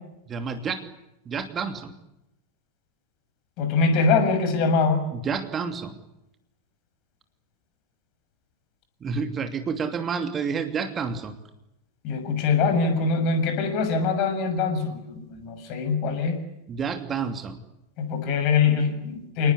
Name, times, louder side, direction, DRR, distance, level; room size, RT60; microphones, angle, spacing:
voice 1, 0.3-0.8 1.3-1.9 5.1-6.0 9.0-11.4 16.7-17.6, right 6 dB, 25° right, 7 dB, 2.7 m, -29 dB
voice 2, 3.6-5.0 12.0-16.3 18.0-19.5, left 4 dB, 40° left, 8 dB, 6.6 m, -23 dB
28.5 x 20.0 x 9.9 m, 0.86 s
figure-of-eight pair, 90°, 0 cm